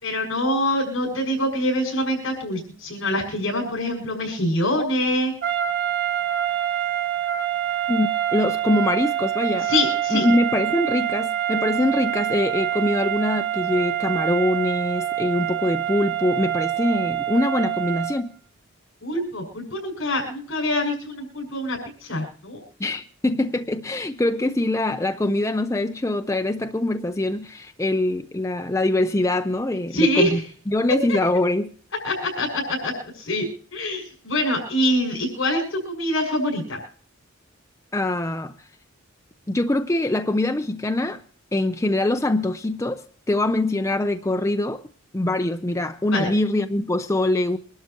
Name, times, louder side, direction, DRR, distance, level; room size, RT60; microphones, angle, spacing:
voice 1, 0.0-5.3 9.7-10.2 19.0-22.6 29.9-30.4 31.1-31.2 32.0-33.5 33.7-36.8 46.1-46.3, left 1 dB, 70° left, 6.3 m, -25 dB
sound 1, 5.4-18.3, right 12 dB, 55° right, 1.8 m, -26 dB
voice 2, 7.9-9.7 10.1-18.3 22.8-30.4 30.7-31.7 37.9-38.5 39.5-41.2 41.5-44.8 45.1-47.6, left 1 dB, 15° left, 0.6 m, -23 dB
24.5 x 12.0 x 2.9 m
head